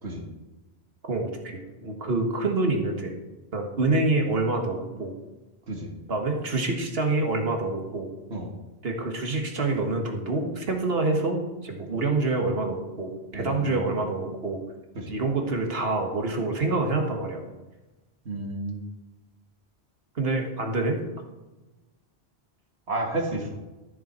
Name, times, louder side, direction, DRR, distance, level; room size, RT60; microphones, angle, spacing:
voice 1, 1.1-3.2 3.5-5.1 6.1-8.1 8.8-14.6 15.1-17.4 20.2-21.0, right 2 dB, 65° right, 2 dB, 1.8 m, -26 dB
voice 2, 13.3-13.9 15.0-15.1 18.3-18.8 22.9-23.6, right 2 dB, 90° right, 1 dB, 2.1 m, -31 dB
13.5 x 7.1 x 4.4 m, 1.1 s
omnidirectional pair, 1.1 m